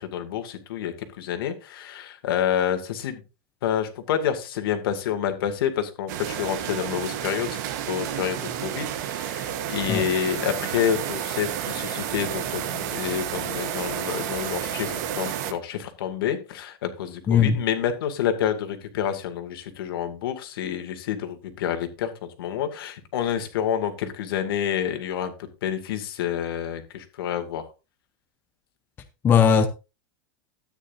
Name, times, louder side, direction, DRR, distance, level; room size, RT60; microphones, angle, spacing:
voice 1, 0.0-3.2 3.6-7.6 7.9-27.7, left 9 dB, 70° left, 2.3 m, -28 dB
sound 1, 6.1-15.5, right 10 dB, 50° right, 1.2 m, -31 dB
voice 2, 17.3-17.6 29.2-29.7, left 7 dB, 15° left, 0.7 m, -18 dB
13.0 x 9.3 x 2.6 m
supercardioid pair, 170°, 13 cm